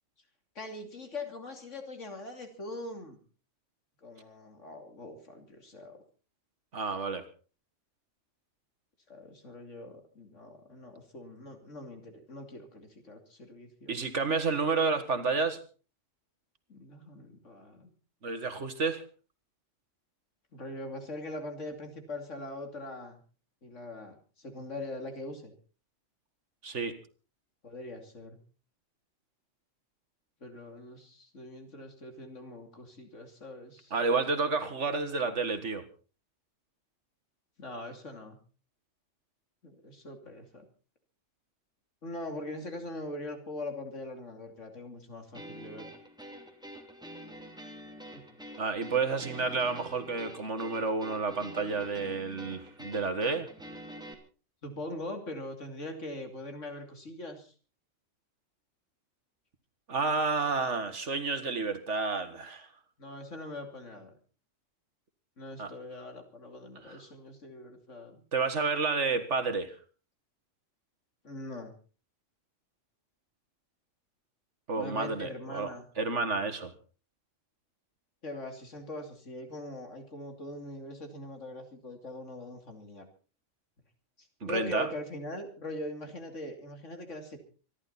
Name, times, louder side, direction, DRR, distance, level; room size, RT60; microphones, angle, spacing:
voice 1, 0.5-3.2 4.0-6.0 9.1-14.0 16.7-17.9 20.5-23.2 23.6-25.5 27.6-28.4 30.4-33.9 37.6-38.4 39.6-40.7 42.0-45.9 48.1-48.2 54.6-57.5 63.0-64.2 65.4-68.2 71.2-71.7 74.8-75.9 78.2-83.0 84.2-87.4, left 2 dB, 70° left, 5 dB, 3.2 m, -42 dB
voice 2, 6.7-7.2 13.9-15.6 18.2-19.0 26.6-27.0 33.9-35.8 48.6-53.5 59.9-62.7 65.6-65.7 66.8-67.0 68.3-69.8 74.7-75.7 76.0-76.7 84.4-84.9, right 4 dB, 65° right, 9 dB, 2.1 m, -30 dB
sound 1, 45.3-54.1, right 1 dB, 5° right, 2.6 m, -46 dB
25.5 x 11.5 x 4.2 m, 0.37 s
omnidirectional pair, 1.3 m